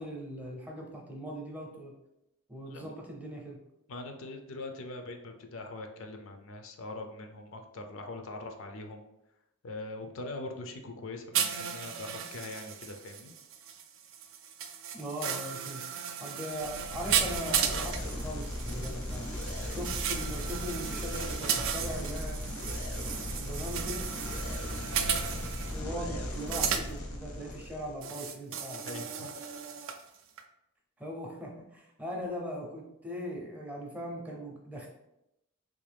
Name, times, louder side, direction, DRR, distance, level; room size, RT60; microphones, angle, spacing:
voice 1, 0.0-1.9 2.5-3.6 14.9-15.8 16.2-19.3 19.7-22.4 23.0-24.0 25.7-28.9 31.0-34.9, equal, 5° right, -1 dB, 0.5 m, -40 dB
voice 2, 3.9-9.0 9.6-13.3 24.5-24.7 28.9-29.3, left 2 dB, 65° left, 5 dB, 0.4 m, -42 dB
sound 1, 11.3-25.8 26.3-26.9 28.0-30.0 30.4-30.5, right 7 dB, 60° right, 0.3 m, -35 dB
sound 2, 16.6-28.0, left 1 dB, 80° left, 0.8 m, -37 dB
3.3 x 2.6 x 3.3 m, 0.85 s
head